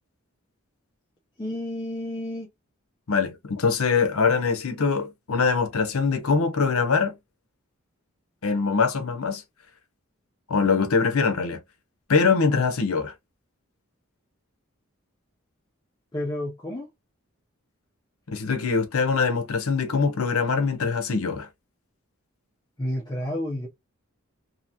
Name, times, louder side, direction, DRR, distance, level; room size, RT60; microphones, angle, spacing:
voice 1, 1.4-2.5 16.1-16.9 22.8-23.7, left 1 dB, 20° left, 0.6 m, -30 dB
voice 2, 3.1-7.1 8.4-9.4 10.5-11.6 12.1-13.1 18.3-21.5, left 5 dB, 80° left, 0.7 m, -23 dB
2.8 x 2.8 x 2.5 m
head